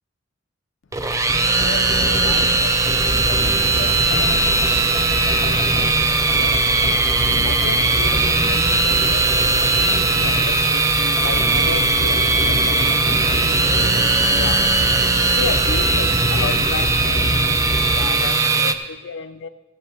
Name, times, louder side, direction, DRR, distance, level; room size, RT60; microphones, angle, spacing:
sound 1, 0.9-18.7, right 3 dB, 15° right, 0.4 m, -19 dB
sound 2, 1.0-18.4, left 1 dB, 20° left, 0.8 m, -27 dB
voice 1, 1.5-3.4 3.7-6.9 7.4-14.7 15.2-19.5, left 5 dB, 60° left, 0.5 m, -34 dB
16.5 x 9.2 x 3.4 m
head